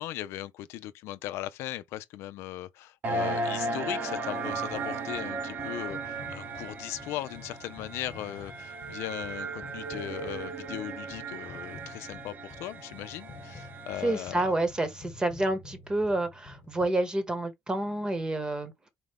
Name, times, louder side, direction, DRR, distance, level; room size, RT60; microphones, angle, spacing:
voice 1, 0.0-14.5, left 14 dB, 80° left, 0.5 m, -38 dB
sound 1, 3.0-14.4, right 3 dB, 45° right, 1.0 m, -36 dB
sound 2, 4.4-16.9, left 3 dB, 45° left, 1.2 m, -50 dB
voice 2, 14.0-18.9, right 1 dB, 20° right, 1.1 m, -29 dB
4.3 x 2.4 x 3.5 m
cardioid pair, 110°, 4 cm